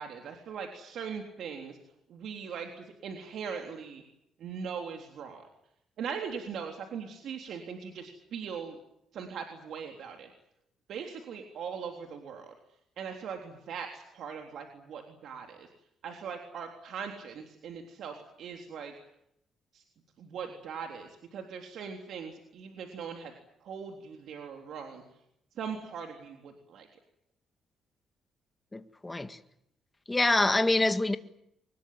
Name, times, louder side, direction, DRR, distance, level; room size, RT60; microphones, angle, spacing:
voice 1, 0.0-1.8 2.1-4.0 4.4-5.5 6.0-8.8 9.1-10.3 10.9-12.5 13.0-15.7 16.0-18.9 19.7-19.8 20.2-23.3 23.6-25.0 25.5-26.9, right 6 dB, 70° right, 3.6 m, -40 dB
voice 2, 28.7-29.4 30.1-31.2, left 2 dB, 15° left, 1.8 m, -26 dB
24.5 x 21.0 x 9.3 m
cardioid pair, 90°, 0 cm